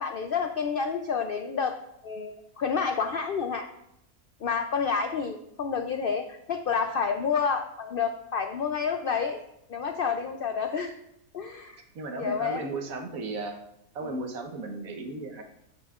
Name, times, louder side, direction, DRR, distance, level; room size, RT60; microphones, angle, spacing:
voice 1, 0.0-1.7 2.0-3.7 4.4-9.4 9.7-10.9 11.3-11.8 12.2-12.6 14.0-14.1, left 6 dB, 70° left, 6 dB, 0.5 m, -29 dB
voice 2, 11.9-13.6 13.9-15.4, right 3 dB, 70° right, 4 dB, 1.4 m, -35 dB
9.9 x 7.6 x 2.4 m, 0.79 s
omnidirectional pair, 1.5 m